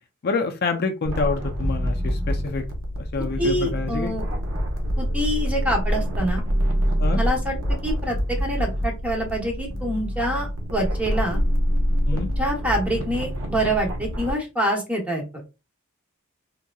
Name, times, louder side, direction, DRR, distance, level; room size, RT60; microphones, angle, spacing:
voice 1, 0.2-2.7 3.0-4.1 7.0-7.2 12.1-12.3, left 4 dB, 45° left, 0.5 m, -27 dB
sound 1, 1.0-14.3, equal, 65° right, 0.8 m, -26 dB
voice 2, 3.4-4.2 5.0-6.4 7.1-7.6 7.8-11.4 12.1-15.4, right 1 dB, 5° right, 1.0 m, -26 dB
3.6 x 2.9 x 2.3 m
head